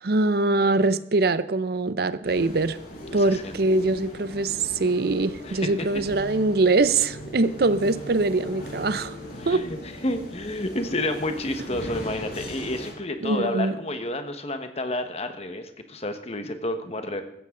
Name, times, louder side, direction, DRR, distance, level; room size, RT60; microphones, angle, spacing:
voice 1, 0.0-2.8 3.1-9.2 9.5-9.6 13.2-13.8, right 3 dB, 55° right, 0.6 m, -23 dB
sound 1, 2.2-12.9, equal, 55° left, 7.4 m, -39 dB
voice 2, 3.1-3.6 5.4-5.9 9.4-9.8 10.0-17.2, left 1 dB, 35° left, 1.4 m, -30 dB
15.5 x 14.0 x 3.9 m
head